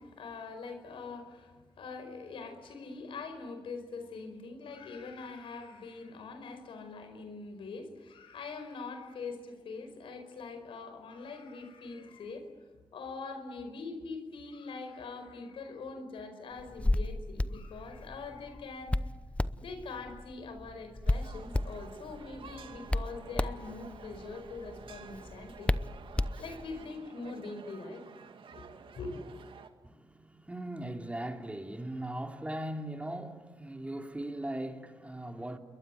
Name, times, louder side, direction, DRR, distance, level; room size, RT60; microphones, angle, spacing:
voice 1, 0.0-12.5 12.9-19.0 19.6-25.7 26.4-28.0 28.5-28.6 28.9-29.2, left 4 dB, 85° left, 4.9 m, -43 dB
Hands, 16.6-26.8, left 1 dB, 15° left, 0.8 m, -34 dB
sound 1, 21.0-29.7, right 6 dB, 75° right, 2.1 m, -51 dB
voice 2, 29.8-35.6, right 1 dB, 15° right, 3.0 m, -39 dB
29.0 x 22.5 x 9.3 m
cardioid pair, 70°, 9 cm